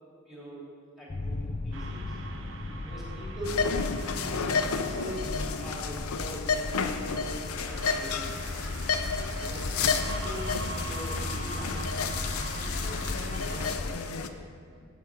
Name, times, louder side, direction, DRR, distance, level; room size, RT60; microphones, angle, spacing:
voice 1, 0.2-0.7 1.0-2.2 2.8-3.7 4.0-8.7 9.4-11.9 12.5-14.3, equal, ahead, -7 dB, 3.1 m, -42 dB
sound 1, 1.1-14.0, left 2 dB, 25° left, 0.3 m, -36 dB
sound 2, 1.7-13.8, right 2 dB, 60° right, 0.8 m, -42 dB
sound 3, 3.5-14.3, left 5 dB, 90° left, 0.6 m, -32 dB
9.2 x 8.3 x 6.0 m, 2.2 s
head